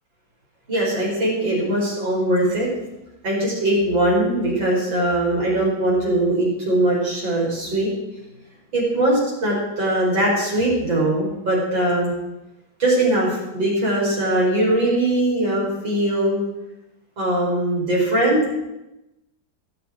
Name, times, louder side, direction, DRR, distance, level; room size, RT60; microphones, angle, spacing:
voice 1, 0.7-2.7 3.2-7.9 8.7-12.1 12.8-16.4 17.2-18.4, right 1 dB, 80° right, -4 dB, 6.7 m, -21 dB
25.5 x 8.5 x 4.7 m, 0.95 s
omnidirectional pair, 2.1 m